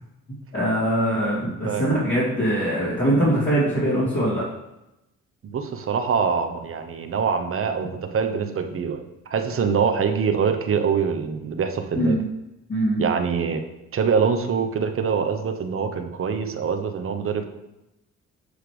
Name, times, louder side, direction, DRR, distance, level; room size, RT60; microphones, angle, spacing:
voice 1, 0.5-4.4 12.0-12.2 12.7-13.1, right 1 dB, 40° left, -9 dB, 2.5 m, -22 dB
voice 2, 5.4-9.0 9.3-12.2 13.0-13.6 13.9-17.5, right 6 dB, 45° right, 6 dB, 0.9 m, -24 dB
8.1 x 3.3 x 5.0 m, 0.93 s
cardioid pair, 90°, 30 cm